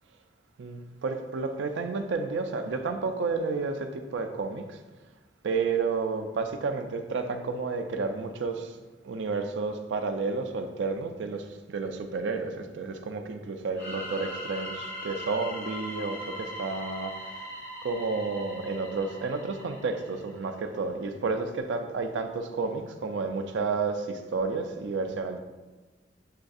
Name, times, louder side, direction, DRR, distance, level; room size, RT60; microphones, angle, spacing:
voice 1, 0.6-4.8 5.4-8.8 9.0-17.4 17.8-25.4, right 4 dB, 75° right, 6 dB, 0.4 m, -31 dB
sound 1, 13.8-20.4, equal, 70° left, 1.5 m, -40 dB
7.5 x 2.6 x 2.3 m, 1.2 s
head